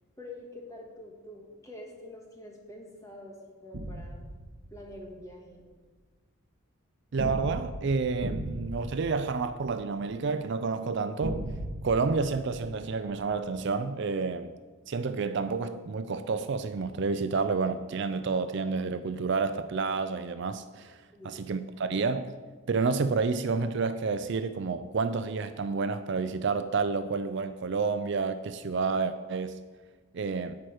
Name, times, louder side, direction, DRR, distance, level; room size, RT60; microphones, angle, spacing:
voice 1, 0.2-4.2 4.7-5.6 21.1-21.4, left 1 dB, 15° left, -1 dB, 1.6 m, -46 dB
sound 1, 3.7-5.1 7.2-10.1 11.2-13.4, right 1 dB, 85° right, 1.1 m, -38 dB
voice 2, 7.1-11.4 11.8-14.5 14.9-21.0 21.2-22.3 22.7-29.6 30.1-30.6, right 4 dB, 55° right, 11 dB, 0.4 m, -29 dB
10.5 x 4.9 x 7.8 m, 1.4 s
head